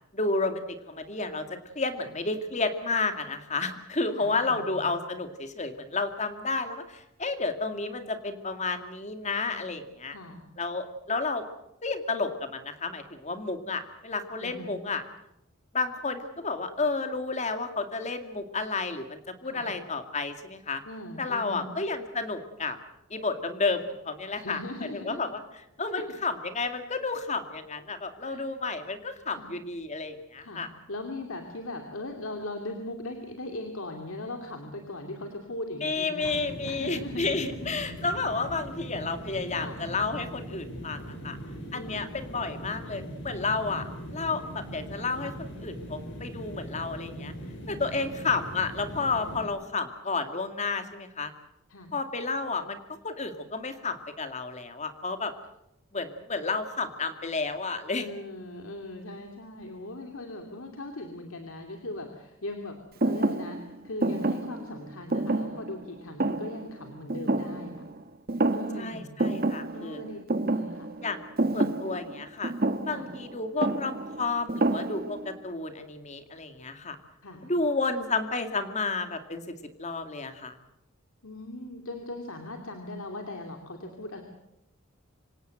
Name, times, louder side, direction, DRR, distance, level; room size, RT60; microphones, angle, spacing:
voice 1, 0.1-1.4 1.8-10.2 10.6-11.4 11.8-15.0 15.7-20.8 21.2-22.8 23.1-24.6 24.9-25.4 25.8-30.7 35.8-41.4 41.7-45.3 45.6-47.3 47.7-51.3 51.9-55.3 55.9-58.1 68.8-70.0 71.0-71.3 71.5-72.5 72.8-77.0 77.4-80.6, left 3 dB, 35° left, 8 dB, 2.3 m, -31 dB
voice 2, 4.2-4.9 10.1-10.4 14.4-14.8 19.4-19.7 20.8-21.7 24.3-25.2 25.9-26.0 28.2-28.4 29.3-29.5 30.4-30.6 30.9-36.4 36.6-37.7 39.6-39.8 41.7-42.1 43.7-43.8 47.9-48.1 51.7-51.9 58.0-67.8 68.5-69.1 69.7-70.9 71.5-71.7 72.9-73.1 77.2-77.5 81.2-84.2, left 1 dB, 80° left, 4 dB, 2.7 m, -39 dB
sound 1, 36.2-49.5, equal, 60° left, 6.0 m, -40 dB
Thump thud, 63.0-68.0 68.3-68.9 69.2-75.3, right 2 dB, 45° right, 1.2 m, -29 dB
26.5 x 17.5 x 7.9 m, 0.85 s
head